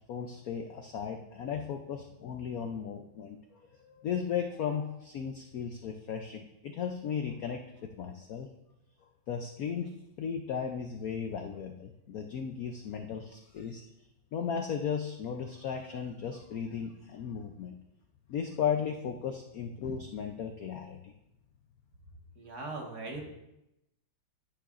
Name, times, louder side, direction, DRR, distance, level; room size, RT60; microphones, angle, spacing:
voice 1, 0.1-8.5 9.3-9.9 10.2-13.8 14.3-17.7 18.3-21.1, left 7 dB, 70° left, 5 dB, 0.8 m, -36 dB
voice 2, 22.4-23.2, right 3 dB, 50° right, 0 dB, 2.0 m, -39 dB
11.0 x 10.0 x 2.5 m, 0.89 s
omnidirectional pair, 2.2 m